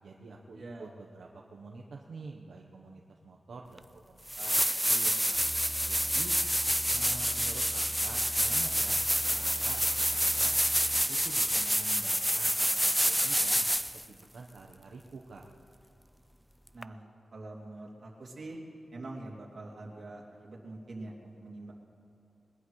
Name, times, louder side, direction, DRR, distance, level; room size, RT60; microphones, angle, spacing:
voice 1, 0.0-5.4 5.8-6.4 6.9-9.0 9.3-9.8 10.1-10.5 11.1-13.7 13.9-15.5, right 3 dB, 70° right, 0 dB, 1.0 m, -47 dB
voice 2, 0.5-0.9 16.7-17.0 17.3-18.6 18.9-21.7, right 2 dB, 50° right, -3 dB, 2.7 m, -44 dB
sound 1, 3.8-3.9 4.3-14.0 16.8-16.9, equal, ahead, 0.3 m, -28 dB
sound 2, 5.3-11.3, right 1 dB, 35° right, 4.0 m, -45 dB
21.0 x 20.5 x 3.2 m, 2.7 s
wide cardioid pair, 120°, 0 cm